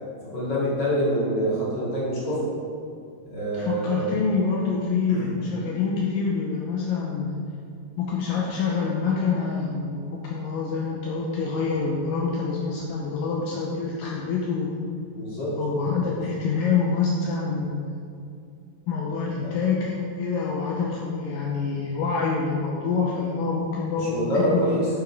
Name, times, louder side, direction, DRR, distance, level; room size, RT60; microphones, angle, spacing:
voice 1, 0.3-2.4 3.3-4.1 5.1-5.3 15.1-15.5 16.2-16.3 19.4-19.5 24.0-24.9, equal, 30° left, -8 dB, 2.5 m, -26 dB
voice 2, 3.5-7.4 8.0-14.7 15.6-18.0 18.9-24.8, left 5 dB, 80° left, -3 dB, 2.0 m, -26 dB
9.0 x 6.8 x 4.6 m, 2.4 s
omnidirectional pair, 5.0 m